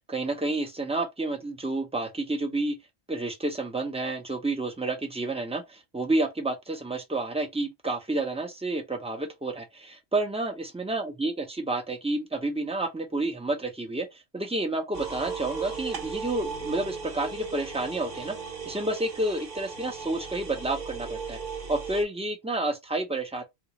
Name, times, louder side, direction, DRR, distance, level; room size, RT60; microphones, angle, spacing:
voice 1, 0.1-2.8 3.1-14.1 14.3-18.4 18.7-21.4 21.7-23.4, right 2 dB, 5° right, 0.5 m, -30 dB
sound 1, 14.9-22.0, right 5 dB, 50° right, 1.0 m, -37 dB
3.7 x 2.4 x 3.0 m
omnidirectional pair, 1.1 m